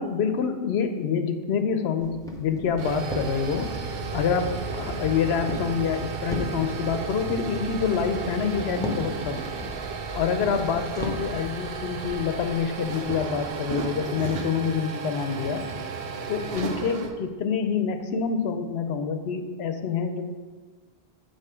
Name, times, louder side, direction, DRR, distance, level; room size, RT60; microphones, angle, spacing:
voice 1, 0.0-3.7 4.1-9.4 10.1-15.6 16.3-20.2, left 6 dB, 75° left, 8 dB, 0.8 m, -27 dB
Walk footsteps, 2.0-11.4, left 1 dB, 5° left, 0.6 m, -38 dB
sound 1, 2.6-17.1, right 5 dB, 70° right, 0.8 m, -33 dB
6.5 x 3.9 x 4.9 m, 1.4 s
omnidirectional pair, 1.1 m